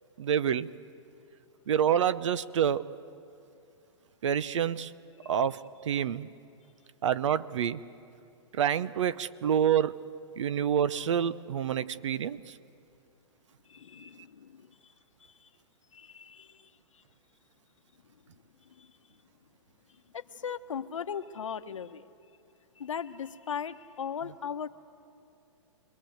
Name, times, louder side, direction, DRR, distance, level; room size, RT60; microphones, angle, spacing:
voice 1, 0.2-0.7 1.7-2.8 4.2-4.9 5.2-6.3 7.0-7.8 8.5-10.0 10.4-12.6, right 9 dB, 70° right, 17 dB, 0.8 m, -27 dB
voice 2, 13.7-14.9 15.2-15.5 15.9-17.0 18.0-18.2 18.6-19.2 19.9-22.1 22.8-24.7, left 7 dB, 90° left, 10 dB, 1.1 m, -39 dB
27.5 x 21.0 x 7.9 m, 2.5 s
hypercardioid pair, 140°, 16 cm